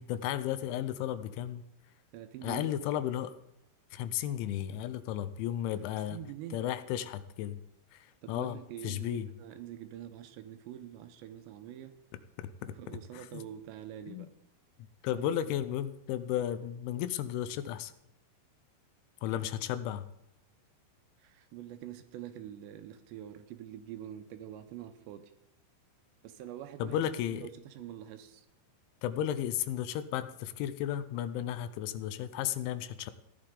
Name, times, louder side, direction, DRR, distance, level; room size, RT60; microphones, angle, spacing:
voice 1, 0.0-1.6 2.4-3.3 3.9-6.2 6.5-7.6 7.9-8.6 8.8-9.3 12.4-13.4 14.1-14.3 15.0-17.9 19.2-20.0 26.8-27.5 29.0-33.1, left 11 dB, 85° left, 12 dB, 3.0 m, -34 dB
voice 2, 2.1-2.7 5.9-6.6 8.2-11.9 12.7-14.3 15.1-15.3 21.2-25.3 26.2-28.5, right 11 dB, 80° right, 9 dB, 2.8 m, -45 dB
15.5 x 11.0 x 3.8 m, 0.84 s
omnidirectional pair, 5.4 m